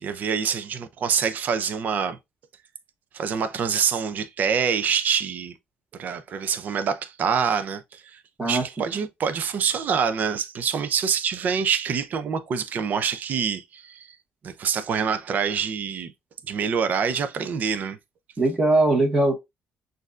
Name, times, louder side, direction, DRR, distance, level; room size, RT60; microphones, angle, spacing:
voice 1, 0.0-2.2 3.1-5.5 6.0-14.2 14.4-16.1 16.5-18.0, right 6 dB, 45° right, 0.5 m, -26 dB
voice 2, 8.4-8.8 18.4-19.3, right 2 dB, 15° right, 1.6 m, -21 dB
6.3 x 2.6 x 2.4 m
cardioid pair, 130°, 4 cm